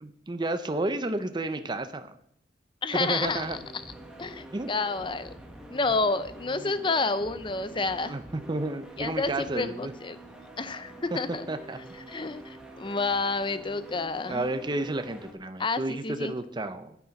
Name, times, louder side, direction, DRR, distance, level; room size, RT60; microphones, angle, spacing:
voice 1, 0.0-2.1 2.9-3.6 4.5-4.7 6.5-6.7 8.1-9.9 11.5-11.8 14.3-17.0, right 2 dB, 25° right, 9 dB, 0.6 m, -31 dB
voice 2, 2.8-3.5 3.7-3.8 4.2-5.3 5.7-8.1 9.0-10.2 10.6-11.5 12.1-14.5 15.6-16.3, left 3 dB, 25° left, 13 dB, 0.6 m, -29 dB
sound 1, 2.9-15.3, right 1 dB, 5° right, 1.4 m, -46 dB
9.8 x 9.4 x 5.9 m, 0.72 s
head